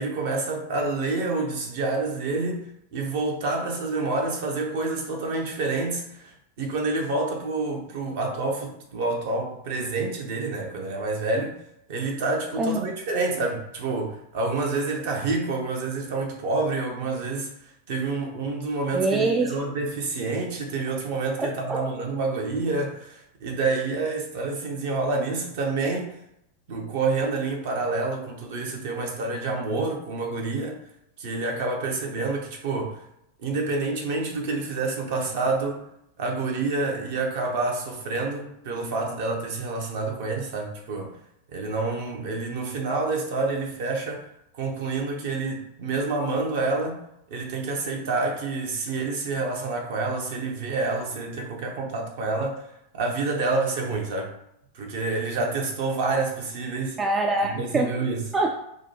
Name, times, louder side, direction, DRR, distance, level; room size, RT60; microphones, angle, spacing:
voice 1, 0.0-11.6 11.9-17.5 17.9-26.1 26.7-30.8 31.2-33.0 33.4-35.8 36.2-41.2 41.5-44.3 44.5-47.0 47.3-52.6 52.9-54.3 54.7-57.0 57.4-58.2, right 3 dB, 50° right, 1 dB, 0.8 m, -28 dB
voice 2, 12.6-12.9 18.9-19.6 21.4-21.8 57.0-58.0 58.3-58.6, right 2 dB, 20° right, 3 dB, 0.3 m, -24 dB
4.8 x 2.2 x 2.8 m, 0.79 s
figure-of-eight pair, 90°, 0 cm